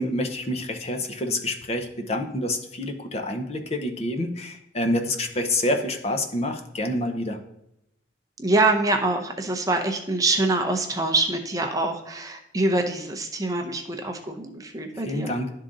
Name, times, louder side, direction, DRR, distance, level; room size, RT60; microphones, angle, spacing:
voice 1, 0.0-7.4 14.9-15.5, left 1 dB, 35° left, 5 dB, 0.7 m, -27 dB
voice 2, 8.4-15.3, right 2 dB, 20° right, 4 dB, 0.6 m, -25 dB
11.0 x 3.7 x 3.8 m, 0.82 s
head